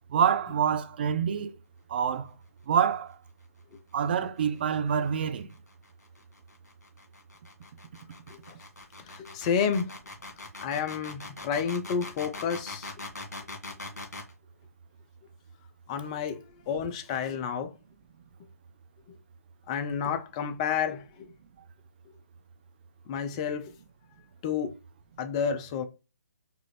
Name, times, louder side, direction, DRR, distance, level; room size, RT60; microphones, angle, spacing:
voice 1, 0.1-1.5 1.9-2.3 2.7-3.2 3.9-5.5, right 8 dB, 35° right, 0.4 m, -26 dB
sound 1, 5.1-14.3, left 2 dB, 70° left, 1.9 m, -42 dB
voice 2, 9.1-9.9 10.6-12.9 15.9-17.7 19.1-19.2 19.7-21.3 23.1-23.7 24.4-24.7 25.2-25.8, left 7 dB, 20° left, 0.4 m, -30 dB
4.6 x 2.4 x 3.2 m
figure-of-eight pair, 140°, 9 cm